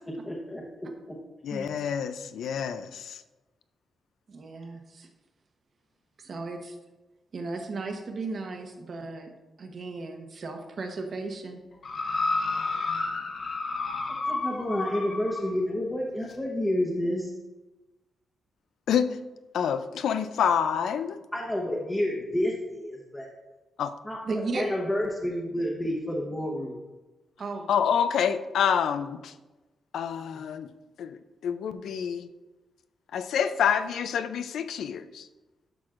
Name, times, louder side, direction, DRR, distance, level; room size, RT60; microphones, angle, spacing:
voice 1, 0.3-0.6 1.5-1.7 14.3-17.3 21.3-23.3 24.0-26.8, left 1 dB, 10° left, -3 dB, 0.9 m, -29 dB
voice 2, 1.4-3.2 18.9-19.2 19.5-21.2 23.8-23.9 27.7-29.3 29.9-30.7 31.0-32.3 33.1-35.3, left 8 dB, 80° left, 11 dB, 0.4 m, -27 dB
voice 3, 4.3-5.1 6.2-6.8 7.3-9.3 9.6-11.6 24.2-24.6 27.4-27.7, right 3 dB, 45° right, 4 dB, 0.9 m, -35 dB
sound 1, 11.8-15.5 16.3-16.4, left 3 dB, 45° left, 0.9 m, -30 dB
11.5 x 6.1 x 2.5 m, 1.1 s
wide cardioid pair, 155°, 0 cm